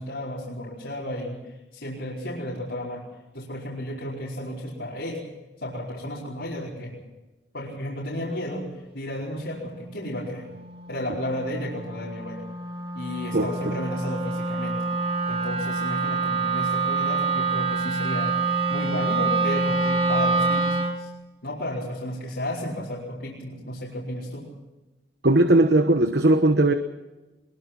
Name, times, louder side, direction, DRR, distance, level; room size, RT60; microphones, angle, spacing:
voice 1, 0.0-3.0 3.3-5.2 5.6-7.0 7.5-10.5 10.9-12.4 12.9-14.8 15.3-18.3 18.7-21.1 21.4-24.5, left 1 dB, 80° left, -6 dB, 4.7 m, -33 dB
Wind instrument woodwind instrument, 9.5-21.0, right 3 dB, 30° right, 2.2 m, -27 dB
voice 2, 25.2-26.7, right 2 dB, 65° right, 8 dB, 1.1 m, -18 dB
22.5 x 21.5 x 6.0 m, 1.1 s
head